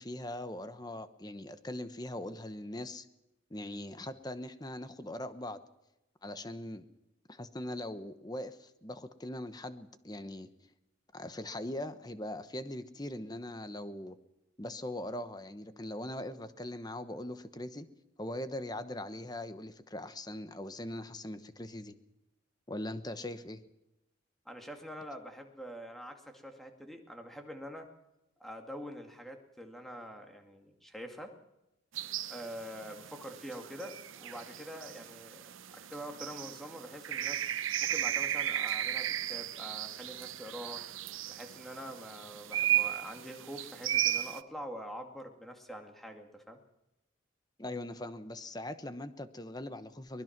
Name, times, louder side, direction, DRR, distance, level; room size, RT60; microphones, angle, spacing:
voice 1, 0.0-3.1 3.5-5.6 6.2-6.9 7.3-10.5 11.1-14.2 14.6-17.9 18.2-22.0 22.7-23.6 47.6-50.2, left 1 dB, 20° left, 11 dB, 1.0 m, -41 dB
voice 2, 24.5-27.9 28.4-31.4 32.3-37.5 37.8-40.8 41.3-46.6, equal, ahead, 4 dB, 2.2 m, -45 dB
sound 1, 32.0-44.4, right 11 dB, 75° right, 0.8 m, -35 dB
23.5 x 20.0 x 6.0 m, 0.91 s
head